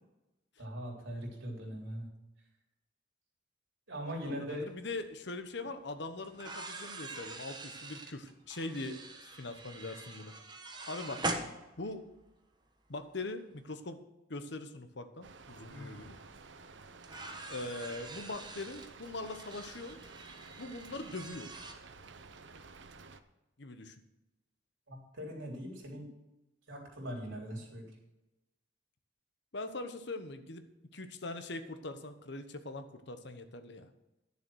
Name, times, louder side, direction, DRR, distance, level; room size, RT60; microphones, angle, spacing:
voice 1, 0.6-2.1 3.9-4.7 24.9-26.1 26.7-27.9, equal, 85° right, -1 dB, 3.6 m, -41 dB
voice 2, 4.3-10.3 10.9-11.3 11.8-12.0 12.9-14.0 14.3-16.2 17.5-20.0 20.6-21.5 23.6-23.9 27.5-27.6 29.5-30.6 30.9-33.9, left 2 dB, 60° left, 9 dB, 1.0 m, -42 dB
sound 1, 5.0-5.1 6.2-12.2 13.5-13.6 15.4-15.5 15.8-15.9 17.0-21.7, right 2 dB, 25° right, 1.1 m, -43 dB
Rain, 15.2-23.2, right 4 dB, 70° right, 0.8 m, -53 dB
Sigh, 15.7-16.2, left 2 dB, 5° left, 4.0 m, -49 dB
11.5 x 7.0 x 6.3 m, 0.99 s
head